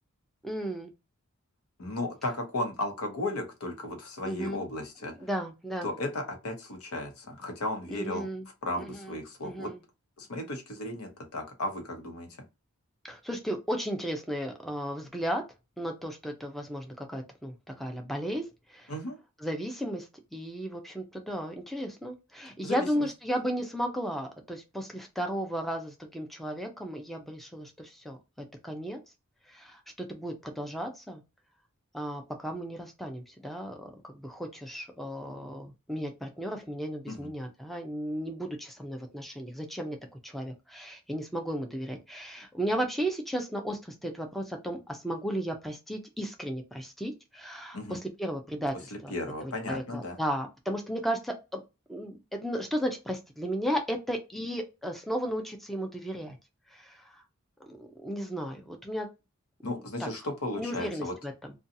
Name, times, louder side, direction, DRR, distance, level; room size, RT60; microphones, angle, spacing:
voice 1, 0.4-0.9 4.2-4.6 5.2-5.9 7.9-8.4 8.8-9.8 13.0-15.4 15.8-18.4 18.7-18.9 19.4-28.2 28.6-29.0 29.5-31.2 31.9-40.0 40.2-49.1 49.4-51.6 51.9-56.4 56.7-57.2 57.6-59.1 60.0-60.1 60.6-61.5, equal, ahead, 3 dB, 0.5 m, -34 dB
voice 2, 1.8-5.1 5.8-8.3 8.6-9.7 10.2-12.3 18.9-19.2 22.6-23.1 37.1-37.3 47.7-48.0 48.9-50.2 59.6-61.1, left 1 dB, 85° left, 3 dB, 0.9 m, -35 dB
2.7 x 2.3 x 2.6 m, 0.26 s
head